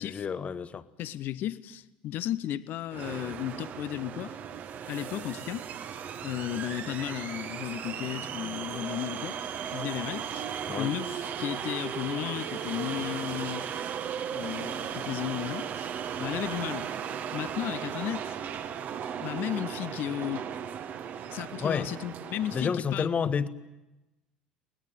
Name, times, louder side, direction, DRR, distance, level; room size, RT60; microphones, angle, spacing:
voice 1, 0.0-0.8 10.7-10.9 21.6-21.9 22.5-23.5, left 6 dB, 30° left, 1.1 m, -29 dB
voice 2, 1.0-4.3 4.9-5.7 6.2-9.4 9.7-13.7 14.3-15.9 16.2-16.9 17.3-18.3 19.2-20.5 21.3-23.1, left 12 dB, 50° left, 0.9 m, -34 dB
sound 1, 2.9-22.8, right 8 dB, 40° right, 1.3 m, -36 dB
22.5 x 20.0 x 9.1 m
figure-of-eight pair, 60°, 4 cm